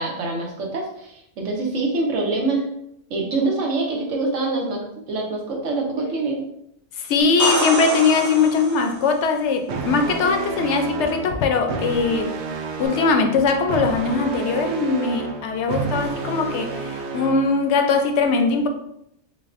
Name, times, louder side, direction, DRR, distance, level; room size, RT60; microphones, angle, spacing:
voice 1, 0.0-2.7 3.1-6.4, right 3 dB, 85° right, 1.2 m, -25 dB
voice 2, 6.9-12.3 12.8-18.7, left 4 dB, 75° left, 0.8 m, -21 dB
sound 1, 7.2-9.1 12.8-12.9, right 2 dB, 25° right, 0.4 m, -26 dB
sound 2, 9.7-17.7, right 4 dB, 70° right, 0.8 m, -30 dB
3.9 x 3.2 x 2.5 m
omnidirectional pair, 1.2 m